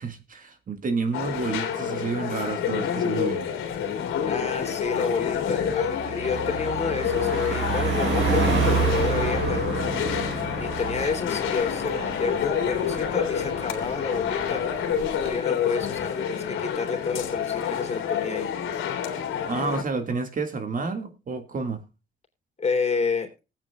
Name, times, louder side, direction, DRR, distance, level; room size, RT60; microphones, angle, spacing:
voice 1, 0.0-3.5 19.4-21.8, right 4 dB, 40° right, 7 dB, 1.8 m, -30 dB
sound 1, 1.1-19.8, left 8 dB, 85° left, 2.4 m, -28 dB
Car passing by, 3.7-4.0 4.4-15.3, right 5 dB, 75° right, 4.3 m, -29 dB
voice 2, 4.2-9.6 10.6-18.5 22.6-23.3, left 5 dB, 35° left, 3 dB, 3.1 m, -30 dB
19.0 x 8.8 x 2.3 m, 0.28 s
cardioid pair, 90°, 20 cm